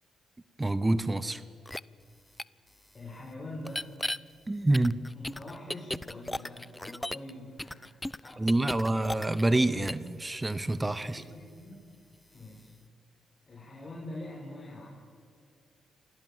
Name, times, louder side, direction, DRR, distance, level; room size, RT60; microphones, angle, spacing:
voice 1, 0.6-1.4 4.5-5.0 8.4-11.2, right 2 dB, 20° right, 14 dB, 1.0 m, -27 dB
sound 1, 1.7-1.8 2.4-2.5 3.6-4.2 4.7-7.3 7.6-9.6 9.9-10.1, left 1 dB, 10° left, 0.5 m, -35 dB
voice 2, 2.9-3.9 5.1-9.0 11.0-11.8 12.3-12.7 13.5-15.0, left 1 dB, 35° left, -3 dB, 5.2 m, -44 dB
27.5 x 17.5 x 7.3 m, 2.3 s
supercardioid pair, 65°, 0 cm